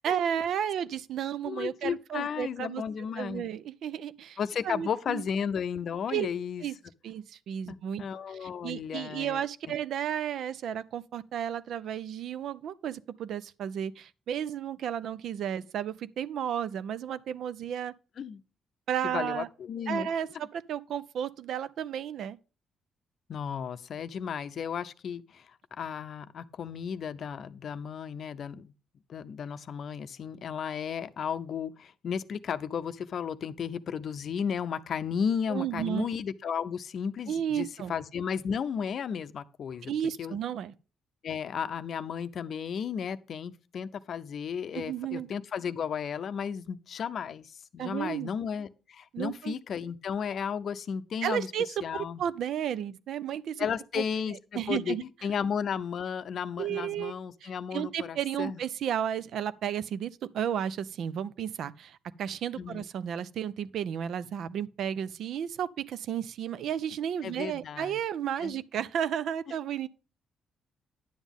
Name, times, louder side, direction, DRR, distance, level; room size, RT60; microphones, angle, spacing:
voice 1, 0.0-2.8 3.2-4.4 4.6-5.2 6.1-6.3 6.6-6.7 7.0-8.0 8.4-17.9 18.9-19.5 19.9-22.4 35.5-36.1 37.3-37.9 39.8-40.7 44.7-45.3 47.8-48.3 49.1-49.5 51.2-53.7 54.0-55.0 56.6-57.1 57.4-69.9, right 9 dB, 70° right, 0.5 m, -33 dB
voice 2, 1.4-3.5 4.4-6.6 7.7-9.7 18.2-18.4 19.0-20.1 23.3-28.7 29.1-39.9 40.2-40.4 41.2-51.5 51.8-52.2 53.6-58.6 62.6-62.8 67.2-68.0 68.4-68.6, left 7 dB, 60° left, 0.5 m, -34 dB
10.0 x 7.2 x 3.5 m
cardioid pair, 90°, 0 cm